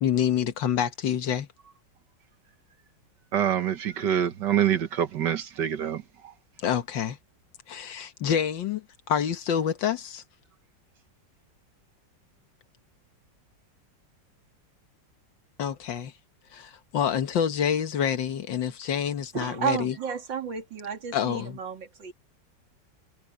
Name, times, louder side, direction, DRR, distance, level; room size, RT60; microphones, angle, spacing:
voice 1, 0.0-1.5 6.6-7.2 7.7-10.2 15.6-16.1 16.5-20.0 21.1-21.6, left 8 dB, 90° left, 2.0 m, -27 dB
voice 2, 3.3-6.0, right 10 dB, 70° right, 1.8 m, -25 dB
voice 3, 19.3-22.1, right 7 dB, 90° right, 3.0 m, -32 dB
omnidirectional pair, 1.9 m